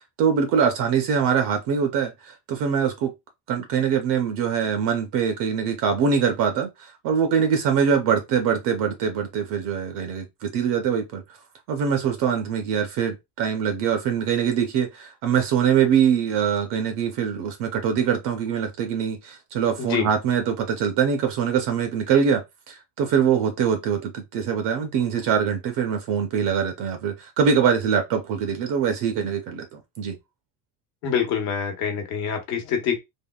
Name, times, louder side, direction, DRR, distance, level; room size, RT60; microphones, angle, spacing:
voice 1, 0.2-3.1 3.5-11.2 11.7-30.2, right 7 dB, 50° right, 0.6 m, -23 dB
voice 2, 31.0-33.0, left 7 dB, 60° left, 1.1 m, -25 dB
3.5 x 2.1 x 2.2 m
cardioid pair, 165°, 40 cm